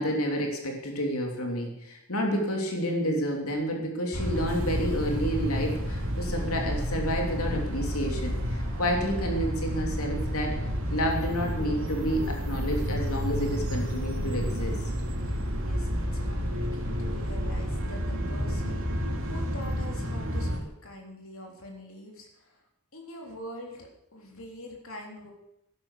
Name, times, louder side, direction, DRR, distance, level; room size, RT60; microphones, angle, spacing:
voice 1, 0.0-10.6 10.9-14.8, equal, 80° left, 2 dB, 3.1 m, -30 dB
sound 1, 4.1-20.6, equal, 65° right, 2.6 m, -30 dB
voice 2, 15.6-22.6 22.9-25.3, equal, 65° left, 1 dB, 3.7 m, -44 dB
13.0 x 11.5 x 6.8 m, 0.81 s
head